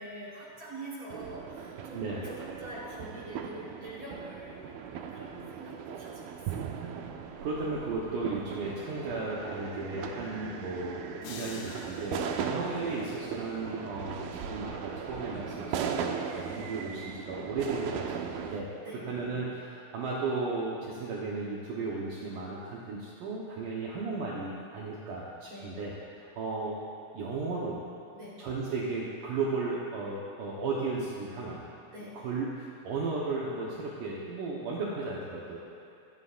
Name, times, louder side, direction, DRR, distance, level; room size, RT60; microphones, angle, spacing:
voice 1, 0.0-4.6 4.9-6.3 6.5-6.9 16.5-16.7 18.8-19.1 25.5-25.7 28.1-28.4 31.9-32.2, right 1 dB, 30° right, -7 dB, 4.0 m, -44 dB
sound 1, 1.1-18.6, right 7 dB, 85° right, 2.2 m, -38 dB
voice 2, 1.9-2.3 7.4-18.7 19.1-26.8 27.1-27.8 28.4-31.6 32.1-35.6, right 3 dB, 65° right, -5 dB, 2.1 m, -35 dB
sound 2, 11.2-13.5, left 5 dB, 70° left, 2.5 m, -48 dB
28.5 x 9.8 x 2.5 m, 2.6 s
omnidirectional pair, 5.0 m